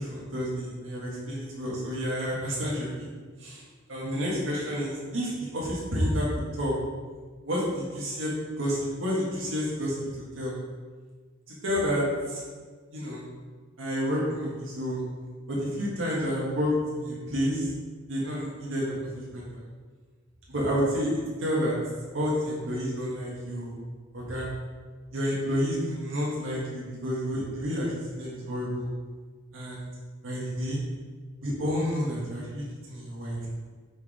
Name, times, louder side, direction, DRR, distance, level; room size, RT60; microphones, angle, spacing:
voice 1, 0.0-3.1 3.4-3.6 3.9-6.3 6.6-6.7 7.4-10.5 11.5-12.4 12.9-13.2 13.8-15.0 15.5-17.7 18.1-19.6 20.5-21.8 22.1-23.7 24.1-24.5 25.1-28.8 29.5-29.9 30.2-30.8 31.4-33.4, equal, 85° right, -5 dB, 1.7 m, -30 dB
5.4 x 4.8 x 5.0 m, 1.5 s
head